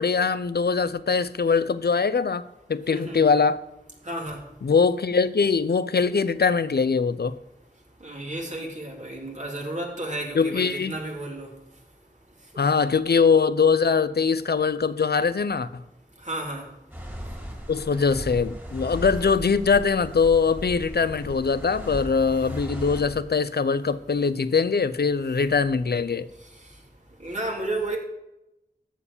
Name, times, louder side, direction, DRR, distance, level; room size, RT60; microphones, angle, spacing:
voice 1, 0.0-2.4 2.7-3.6 4.6-7.4 10.3-10.9 12.6-15.8 17.7-26.3, left 5 dB, 65° left, 0.6 m, -22 dB
voice 2, 2.9-3.3 4.0-4.4 8.0-11.5 16.2-16.7 27.2-28.0, right 2 dB, 40° right, 3.0 m, -32 dB
sound 1, 16.9-23.2, equal, 10° right, 3.1 m, -36 dB
14.0 x 4.7 x 8.6 m
wide cardioid pair, 55°, 18 cm